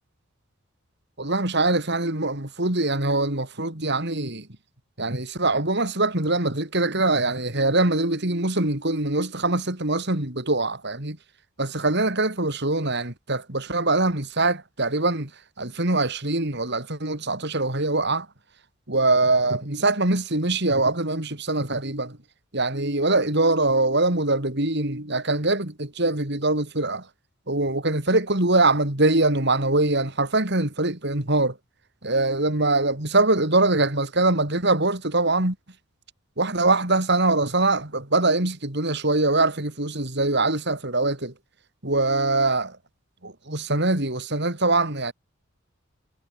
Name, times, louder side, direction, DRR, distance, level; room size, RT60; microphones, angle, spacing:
voice 1, 1.2-4.5 5.0-11.2 11.6-15.3 15.6-18.3 18.9-22.2 22.5-27.1 27.5-31.6 32.0-35.6 36.4-41.3 41.8-42.8 43.2-45.1, right 2 dB, 55° right, 3.8 m, -23 dB
head